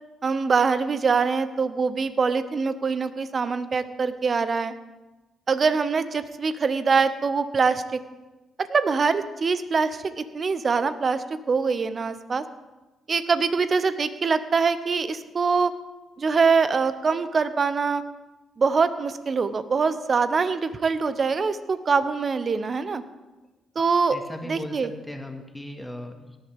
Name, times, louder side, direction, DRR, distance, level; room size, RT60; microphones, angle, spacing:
voice 1, 0.2-4.7 5.5-8.0 8.7-12.4 13.1-15.7 16.2-18.0 18.6-23.0 23.7-24.9, right 5 dB, 45° right, 12 dB, 0.9 m, -24 dB
voice 2, 24.1-24.8 25.1-26.4, left 1 dB, 10° left, 4 dB, 2.1 m, -37 dB
18.0 x 11.5 x 3.6 m, 1.1 s
hypercardioid pair, 40°, 0 cm